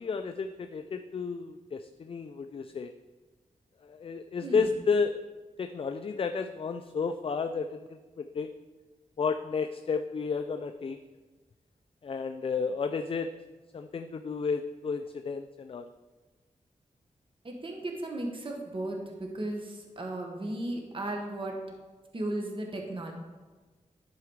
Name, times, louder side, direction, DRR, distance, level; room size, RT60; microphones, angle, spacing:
voice 1, 0.0-2.9 3.8-5.2 5.6-8.5 9.2-11.0 12.0-13.3 13.7-15.9, left 5 dB, 45° left, 8 dB, 0.4 m, -32 dB
voice 2, 17.4-21.6 22.1-23.1, right 1 dB, 40° right, 1 dB, 1.4 m, -35 dB
11.5 x 4.8 x 4.7 m, 1.3 s
wide cardioid pair, 85°, 14 cm